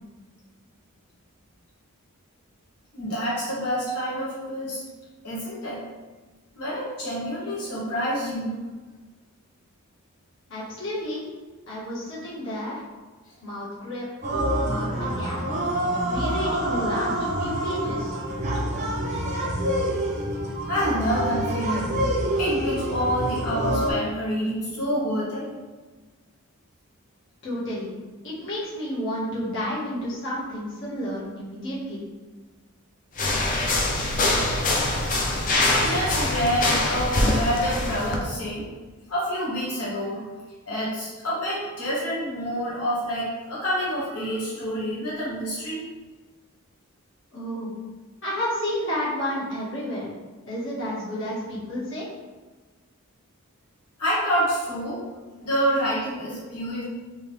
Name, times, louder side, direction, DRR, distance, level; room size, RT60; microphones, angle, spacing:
voice 1, 2.9-4.8 5.2-5.8 6.5-8.6 18.7-19.0 20.7-21.9 22.4-25.5 35.7-38.6 39.1-40.3 40.7-45.8 54.0-55.0 55.4-56.8, equal, 85° left, -8 dB, 1.3 m, -27 dB
voice 2, 10.5-11.2 11.7-12.7 13.4-14.0 14.6-15.4 16.0-18.2 27.4-27.9 28.4-32.0 47.3-47.7 48.2-50.1 50.5-52.1, equal, 55° left, -8 dB, 1.2 m, -31 dB
sound 1, 14.2-23.9, right 1 dB, 30° right, 0.5 m, -27 dB
sound 2, 33.2-38.2, left 2 dB, 35° left, 0.4 m, -24 dB
3.5 x 2.9 x 3.2 m, 1.3 s
head